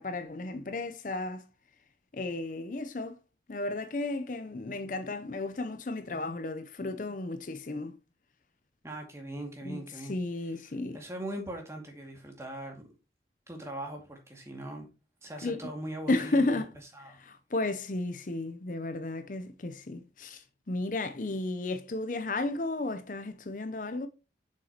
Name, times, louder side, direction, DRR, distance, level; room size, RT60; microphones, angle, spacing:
voice 1, 0.0-1.4 2.1-3.2 3.5-8.0 9.6-11.0 15.4-15.7 16.1-16.7 17.0-24.1, left 2 dB, 45° left, 0.6 m, -33 dB
voice 2, 8.8-10.2 10.9-12.9 13.5-14.9 15.2-16.6 17.0-17.2, right 1 dB, 15° right, 2.2 m, -40 dB
7.4 x 6.4 x 2.9 m
head